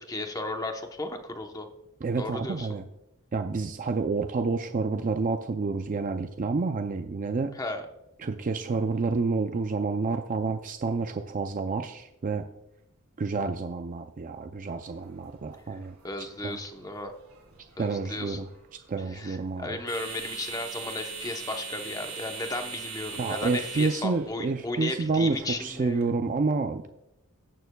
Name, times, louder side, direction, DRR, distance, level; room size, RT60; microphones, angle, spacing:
voice 1, 0.0-1.7 2.2-2.7 7.5-7.8 16.0-17.1 17.8-18.4 19.1-26.1, left 2 dB, 15° left, 5 dB, 0.8 m, -35 dB
voice 2, 2.0-2.8 3.3-7.6 8.2-12.5 13.2-15.9 16.4-16.6 17.8-18.5 18.9-19.8 23.2-26.9, right 4 dB, 35° right, 7 dB, 0.4 m, -29 dB
sound 1, 14.7-26.0, right 5 dB, 85° right, 2.5 m, -42 dB
17.0 x 6.8 x 2.2 m, 0.91 s
head